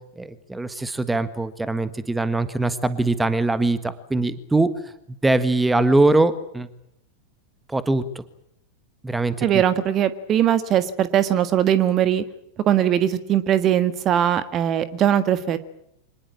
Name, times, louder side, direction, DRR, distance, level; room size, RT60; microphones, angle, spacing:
voice 1, 0.2-4.7 5.2-6.7 7.7-8.2 9.0-9.6, right 2 dB, 5° right, 13 dB, 1.5 m, -22 dB
voice 2, 9.4-12.2 12.7-15.6, right 10 dB, 30° right, 13 dB, 1.5 m, -20 dB
25.5 x 19.5 x 8.7 m, 0.76 s
figure-of-eight pair, 90°, 0 cm